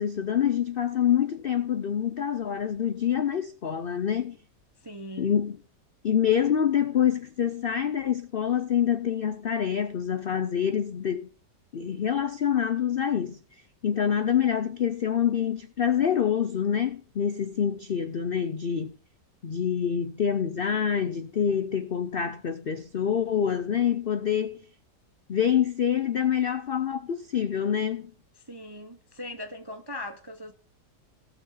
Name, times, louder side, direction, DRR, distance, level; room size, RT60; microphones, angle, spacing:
voice 1, 0.0-4.4 5.2-5.6 6.0-11.3 11.7-13.4 13.8-18.9 19.4-24.6 25.3-28.1, left 8 dB, 75° left, 0.5 m, -26 dB
voice 2, 4.8-5.4 28.5-30.5, left 1 dB, 30° right, 0.4 m, -39 dB
17.0 x 6.2 x 4.1 m
omnidirectional pair, 1.8 m